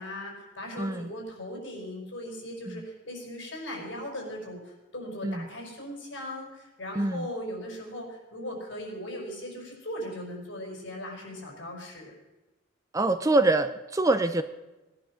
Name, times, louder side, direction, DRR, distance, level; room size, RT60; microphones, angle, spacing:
voice 1, 0.0-12.1, left 1 dB, 60° left, 0 dB, 5.5 m, -38 dB
voice 2, 0.8-1.1 2.7-2.8 5.2-5.5 7.0-7.3 12.9-14.4, right 2 dB, 15° right, 10 dB, 0.6 m, -25 dB
18.5 x 10.5 x 6.3 m, 1.1 s
head